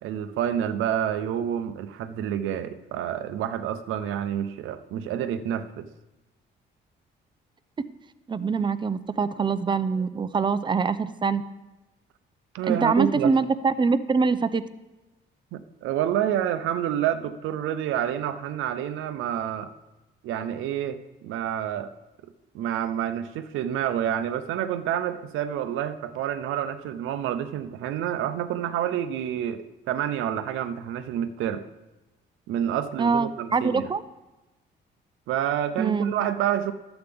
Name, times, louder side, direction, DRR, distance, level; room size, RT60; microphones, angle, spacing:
voice 1, 0.0-5.9 12.5-13.4 15.5-19.7 20.2-21.9 22.5-31.6 32.5-33.9 35.3-36.7, right 10 dB, 90° right, 11 dB, 0.6 m, -28 dB
voice 2, 8.3-11.4 12.7-14.6 33.0-34.0 35.8-36.1, right 5 dB, 25° right, 13 dB, 0.5 m, -24 dB
11.5 x 8.0 x 3.5 m, 1.1 s
cardioid pair, 90°, 20 cm